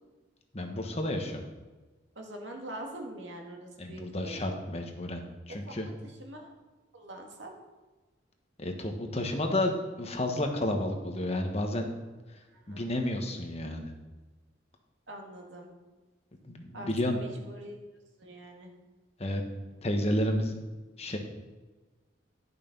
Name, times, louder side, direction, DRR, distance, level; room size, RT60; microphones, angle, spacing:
voice 1, 0.5-1.4 3.8-5.9 8.6-11.9 12.7-13.9 16.4-17.2 19.2-19.4 19.8-20.6 21.0-21.2, left 1 dB, 35° left, 3 dB, 1.2 m, -31 dB
voice 2, 2.2-4.5 5.5-5.7 6.0-6.5 6.9-7.5 12.5-12.9 15.1-15.7 16.7-17.8 18.2-18.7, right 1 dB, 85° right, 1 dB, 2.1 m, -44 dB
11.0 x 6.5 x 5.3 m, 1.3 s
head